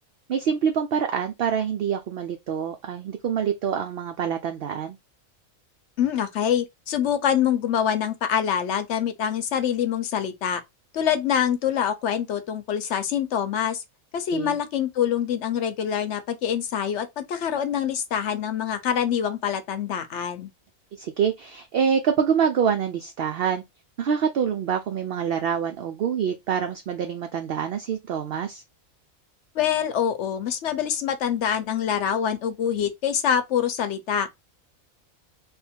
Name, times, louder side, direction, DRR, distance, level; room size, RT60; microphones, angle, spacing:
voice 1, 0.3-5.0 14.3-14.6 21.0-23.6 24.0-28.6, right 7 dB, 65° right, 0.6 m, -26 dB
voice 2, 6.0-10.6 10.9-13.8 14.1-20.5 29.5-34.3, left 9 dB, 65° left, 0.9 m, -25 dB
3.5 x 2.1 x 4.3 m
omnidirectional pair, 1.4 m